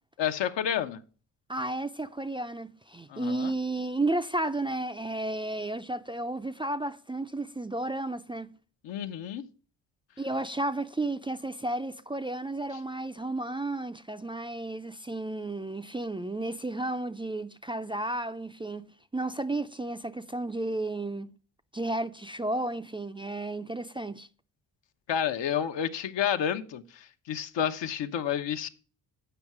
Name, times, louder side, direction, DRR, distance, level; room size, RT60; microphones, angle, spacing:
voice 1, 0.2-1.0 3.1-3.5 8.8-9.4 25.1-28.7, left 9 dB, 75° left, 0.9 m, -30 dB
voice 2, 1.5-8.5 10.2-21.3 21.7-24.3, right 2 dB, 10° right, 0.4 m, -33 dB
8.0 x 5.5 x 5.9 m
cardioid pair, 70°, 44 cm